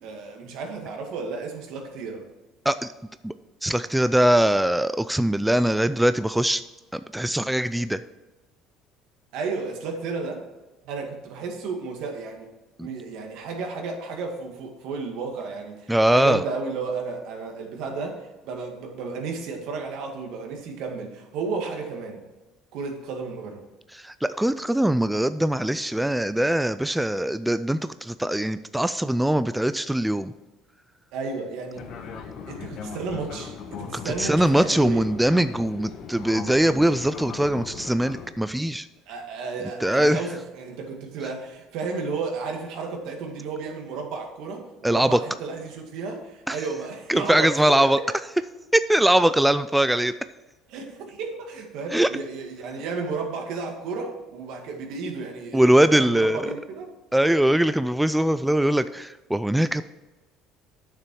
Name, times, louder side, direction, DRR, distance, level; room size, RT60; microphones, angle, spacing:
voice 1, 0.0-2.3 9.3-10.4 10.8-12.5 12.8-22.2 22.7-23.6 31.1-31.9 32.5-35.0 39.1-47.8 50.7-56.9, right 4 dB, 70° right, 2 dB, 2.0 m, -33 dB
voice 2, 3.6-6.6 6.9-8.0 12.8-12.9 15.9-16.4 24.0-30.3 34.2-38.9 39.8-40.2 44.8-45.2 46.5-46.6 47.1-48.0 48.7-50.1 51.9-52.1 55.5-56.5 57.1-59.8, right 1 dB, 5° right, 12 dB, 0.3 m, -21 dB
Fixed-wing aircraft airplane, 31.7-38.3, left 6 dB, 55° left, 1.3 m, -38 dB
9.0 x 6.8 x 4.7 m, 1.2 s
cardioid pair, 115°, 0 cm